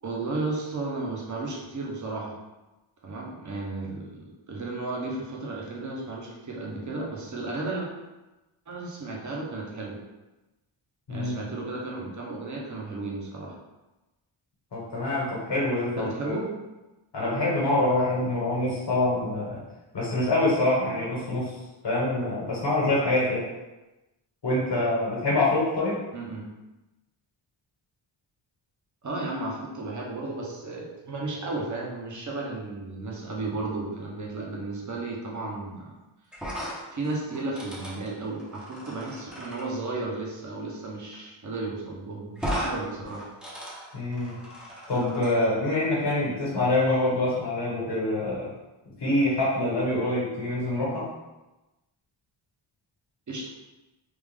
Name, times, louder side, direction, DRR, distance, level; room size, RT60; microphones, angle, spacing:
voice 1, 0.0-2.3 3.0-7.9 8.7-10.0 11.1-13.5 16.0-16.5 26.1-26.4 29.0-35.9 36.9-43.2 53.3-53.5, right 2 dB, 35° right, -2 dB, 0.8 m, -34 dB
voice 2, 14.7-16.3 17.1-19.6 19.9-21.5 21.8-23.5 24.4-26.0 43.9-44.4 44.9-48.5 49.0-51.1, left 2 dB, 55° left, -5 dB, 1.3 m, -25 dB
sound 1, 36.3-39.7 41.1-41.3 41.5-41.6 42.4-42.7 43.1-45.3, equal, ahead, 0.7 m, -36 dB
3.4 x 2.5 x 3.5 m, 1.1 s
wide cardioid pair, 135°, 49 cm